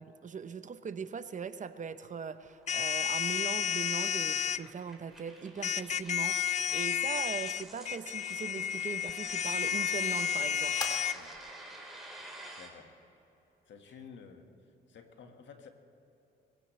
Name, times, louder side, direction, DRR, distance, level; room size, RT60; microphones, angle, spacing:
voice 1, 0.0-10.9, right 6 dB, 40° right, 11 dB, 0.8 m, -40 dB
sound 1, 2.0-12.7, right 1 dB, ahead, 4.0 m, -52 dB
sound 2, 2.7-4.6 5.6-11.2, left 9 dB, 35° left, 0.4 m, -31 dB
sound 3, 7.3-14.2, left 1 dB, 20° left, 2.4 m, -49 dB
voice 2, 12.5-12.9 13.7-14.5 14.9-15.7, left 6 dB, 70° left, 5 dB, 1.7 m, -52 dB
23.0 x 16.0 x 3.2 m, 3.0 s
cardioid pair, 90°, 20 cm